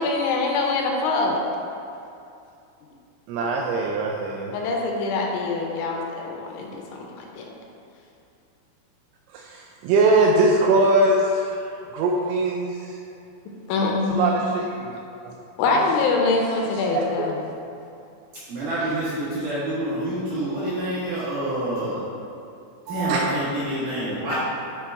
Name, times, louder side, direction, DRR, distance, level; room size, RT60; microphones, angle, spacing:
voice 1, 0.0-1.4 4.5-7.5 13.7-14.4 15.6-17.5 18.8-18.9, left 3 dB, 80° left, 0 dB, 3.0 m, -24 dB
voice 2, 3.3-4.5 9.3-11.6 11.9-12.9 14.1-14.9 15.2-15.4 16.9-17.1 22.9-23.2, right 2 dB, 85° right, 0 dB, 2.7 m, -21 dB
voice 3, 18.5-22.0 22.9-24.3, right 1 dB, 60° right, -11 dB, 2.3 m, -27 dB
9.7 x 5.0 x 3.4 m, 2.6 s
omnidirectional pair, 5.7 m